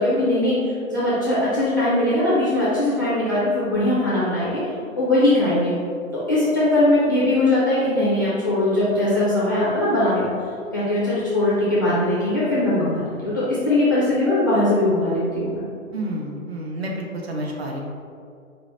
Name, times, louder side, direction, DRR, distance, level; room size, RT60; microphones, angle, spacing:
voice 1, 0.0-4.6 5.0-5.7 6.1-10.3 10.7-15.6, left 1 dB, 15° left, -11 dB, 0.4 m, -20 dB
voice 2, 15.9-17.8, right 1 dB, 50° right, 0 dB, 0.8 m, -29 dB
4.8 x 2.2 x 4.1 m, 2.4 s
figure-of-eight pair, 130°, 41 cm